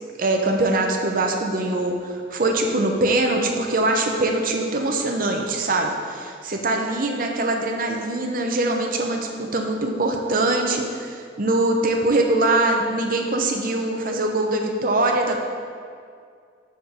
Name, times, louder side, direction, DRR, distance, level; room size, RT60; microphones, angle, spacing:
voice 1, 0.2-15.4, right 2 dB, 50° right, 2 dB, 0.7 m, -22 dB
5.1 x 5.0 x 6.3 m, 2.2 s
head